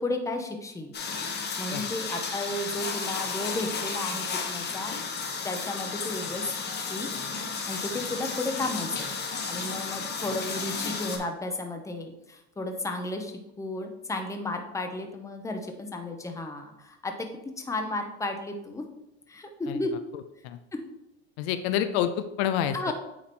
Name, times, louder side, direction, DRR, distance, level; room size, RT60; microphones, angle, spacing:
voice 1, 0.0-0.9 1.6-5.0 5.4-7.1 7.7-9.1 9.5-17.3 17.6-18.9 19.3-20.0 20.7-20.8 22.7-22.9, left 2 dB, 10° left, 4 dB, 0.8 m, -33 dB
sound 1, 0.9-11.2, left 5 dB, 30° left, 1.1 m, -33 dB
voice 2, 20.1-20.6 21.4-22.9, left 10 dB, 75° left, 10 dB, 0.6 m, -28 dB
8.6 x 3.0 x 4.2 m, 0.89 s
supercardioid pair, 120°, 32 cm